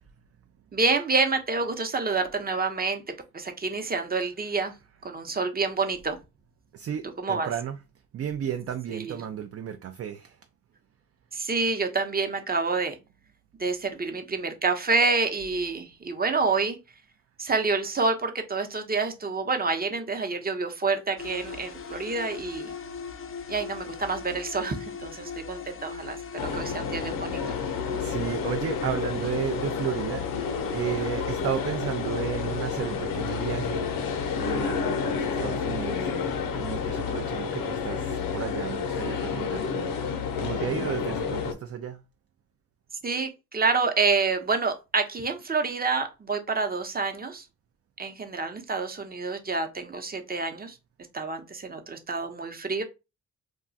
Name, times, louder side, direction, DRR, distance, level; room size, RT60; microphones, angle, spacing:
voice 1, 0.7-3.0 3.3-4.7 5.0-6.2 7.2-7.5 8.9-9.2 11.3-13.0 13.6-16.8 17.4-22.7 23.5-27.6 43.0-47.5 48.0-50.8 51.1-52.8, right 4 dB, 25° right, 0.8 m, -28 dB
voice 2, 6.7-7.8 8.1-10.3 28.0-30.2 30.7-33.8 34.4-36.3 36.6-40.0 40.4-42.0, right 9 dB, 45° right, 0.4 m, -33 dB
sound 1, 21.2-39.8, left 6 dB, 40° left, 0.5 m, -41 dB
sound 2, 26.4-41.5, left 6 dB, 90° left, 0.7 m, -30 dB
2.3 x 2.3 x 3.9 m
cardioid pair, 65°, 33 cm